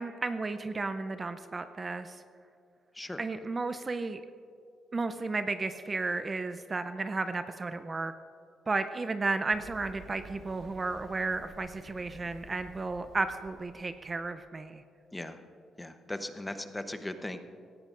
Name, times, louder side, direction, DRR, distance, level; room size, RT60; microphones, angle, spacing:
voice 1, 0.0-2.2 3.2-4.2 4.9-8.1 8.7-14.8, right 3 dB, 30° right, 10 dB, 0.5 m, -33 dB
Run, 9.5-14.3, right 2 dB, 55° right, 1.8 m, -52 dB
voice 2, 15.8-17.4, left 1 dB, 10° left, 8 dB, 0.8 m, -38 dB
17.5 x 13.5 x 2.5 m, 2.4 s
cardioid pair, 90°, 0 cm